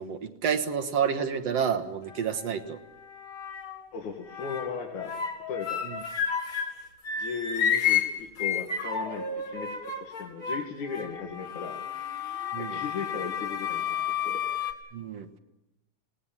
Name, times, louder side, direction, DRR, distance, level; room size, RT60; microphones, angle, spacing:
voice 1, 0.0-2.8 5.8-6.0 12.5-12.8 14.9-15.4, right 7 dB, 60° right, 6 dB, 2.4 m, -29 dB
sound 1, 1.1-1.7 2.1-3.9 4.2-6.8 7.0-14.7, left 7 dB, 45° left, 3.0 m, -32 dB
voice 2, 3.9-5.1 5.5-5.8 7.2-11.8 12.6-14.0 14.2-14.4, left 5 dB, 80° left, 0 dB, 3.7 m, -37 dB
28.5 x 19.0 x 7.4 m, 0.97 s
omnidirectional pair, 3.4 m